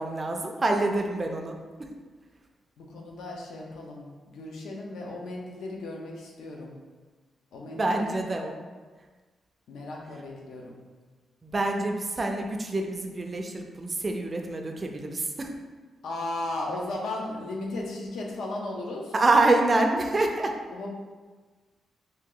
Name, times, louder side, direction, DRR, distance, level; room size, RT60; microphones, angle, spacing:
voice 1, 0.0-1.5 7.8-8.5 11.4-15.5 19.1-20.5, right 2 dB, 20° right, 3 dB, 0.3 m, -26 dB
voice 2, 2.8-6.8 7.5-8.2 9.7-10.8 16.0-19.1 20.7-20.9, left 2 dB, 85° left, -1 dB, 0.6 m, -36 dB
2.9 x 2.8 x 3.8 m, 1.4 s
wide cardioid pair, 170°, 0 cm